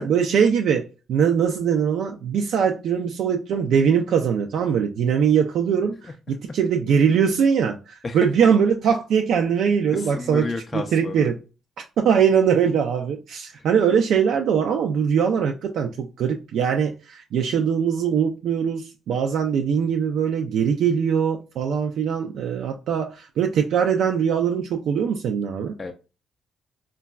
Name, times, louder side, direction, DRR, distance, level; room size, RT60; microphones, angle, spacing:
voice 1, 0.0-10.4 10.9-11.4 12.0-25.7, right 7 dB, 75° right, 0.3 m, -21 dB
voice 2, 9.9-11.3 13.6-13.7 25.8-25.9, left 3 dB, 30° left, 0.3 m, -31 dB
3.8 x 2.2 x 2.3 m
cardioid pair, 90°, 0 cm